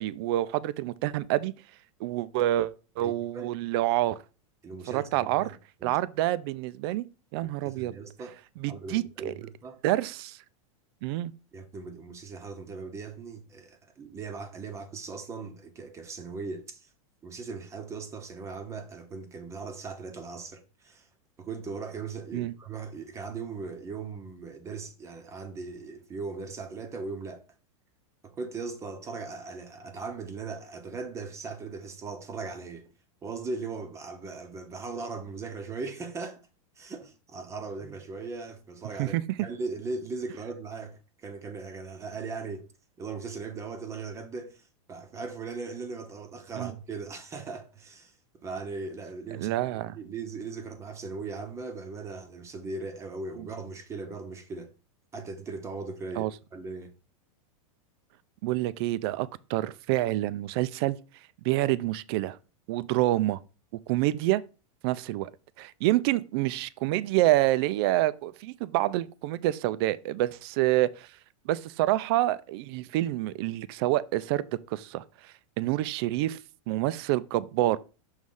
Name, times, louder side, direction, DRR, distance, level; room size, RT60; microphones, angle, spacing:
voice 1, 0.0-1.5 2.0-4.2 4.9-5.5 5.8-7.0 7.3-7.9 8.6-9.3 9.8-10.4 11.0-11.3 22.3-22.5 39.0-39.2 46.6-46.7 49.4-50.0 56.2-56.3 58.4-61.0 61.4-62.4 62.7-63.4 63.9-64.4 64.8-65.3 65.6-71.1 71.5-74.4 74.7-75.0 75.6-76.4 76.7-77.8, right 15 dB, 45° right, 0.4 m, -27 dB
voice 2, 3.0-3.5 4.6-5.6 5.8-6.0 7.4-8.4 8.7-9.8 11.5-16.9 17.2-21.1 21.4-27.4 28.2-32.9 33.2-36.4 36.8-42.7 43.0-48.1 48.4-54.7 55.1-56.9, right 4 dB, 15° right, 0.7 m, -39 dB
6.4 x 3.2 x 5.4 m
supercardioid pair, 150°, 17 cm